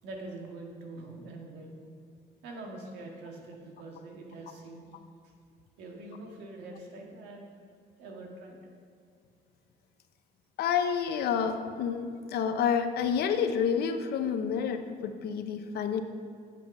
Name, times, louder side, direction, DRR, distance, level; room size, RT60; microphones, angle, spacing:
voice 1, 0.0-1.7 2.4-4.9 5.8-7.4 8.0-8.6, right 2 dB, 85° right, 0 dB, 1.8 m, -44 dB
voice 2, 10.6-16.0, left 7 dB, 70° left, 8 dB, 0.8 m, -29 dB
8.4 x 7.5 x 5.4 m, 2.3 s
cardioid pair, 110°, 17 cm